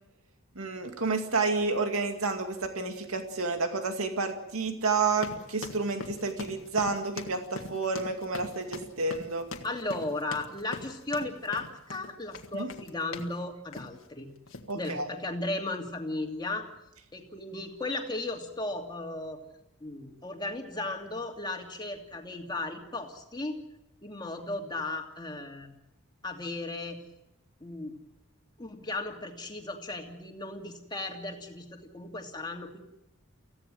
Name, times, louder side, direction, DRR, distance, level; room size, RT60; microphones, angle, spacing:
voice 1, 0.6-9.5 12.5-12.7 14.7-15.1, right 4 dB, 85° right, 5 dB, 2.3 m, -30 dB
sound 1, 5.1-13.4 13.7-14.0 14.5-14.7, left 3 dB, 70° left, 1.8 m, -42 dB
voice 2, 9.6-14.3 14.7-16.6 17.1-19.4 19.8-23.6 24.0-25.7 26.2-27.0 27.6-28.0 28.6-32.8, left 2 dB, 20° left, 2 dB, 2.7 m, -35 dB
25.0 x 16.0 x 7.8 m, 0.84 s
head